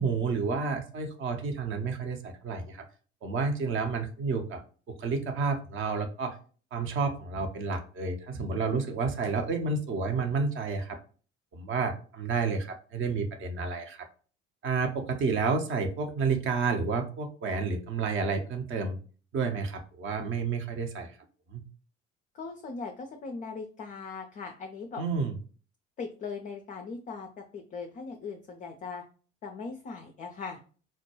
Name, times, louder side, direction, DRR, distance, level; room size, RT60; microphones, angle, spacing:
voice 1, 0.0-2.9 3.2-4.6 4.9-6.4 6.7-11.0 11.5-14.1 14.6-19.0 19.3-21.2 21.5-21.7 25.0-25.4, right 4 dB, 35° right, 6 dB, 0.6 m, -30 dB
voice 2, 22.3-25.0 26.0-29.0 29.4-30.6, left 4 dB, 25° left, 3 dB, 0.3 m, -39 dB
4.4 x 2.2 x 2.9 m, 0.40 s
figure-of-eight pair, 60°, 36 cm